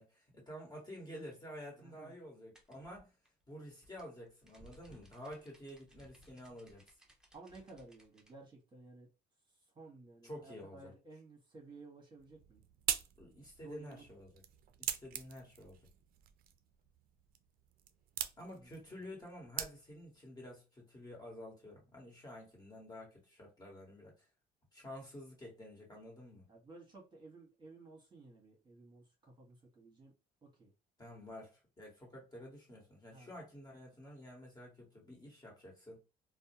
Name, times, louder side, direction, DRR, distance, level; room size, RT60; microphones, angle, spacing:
voice 1, 0.0-3.1 3.5-6.8 10.2-10.9 13.2-14.3 14.8-15.8 18.4-24.3 24.7-26.5 31.0-36.0, equal, 25° left, 1.4 m, -50 dB
voice 2, 1.8-2.1 7.3-9.1 9.5-12.6 13.6-14.3 18.5-18.7 26.5-30.1 30.4-30.7 33.1-33.3, right 3 dB, 25° right, 1.1 m, -55 dB
sound 1, 2.5-8.3, equal, 5° right, 0.7 m, -63 dB
sound 2, 12.2-20.2, right 10 dB, 60° right, 0.4 m, -43 dB
2.6 x 2.1 x 2.8 m
cardioid pair, 110°, 17 cm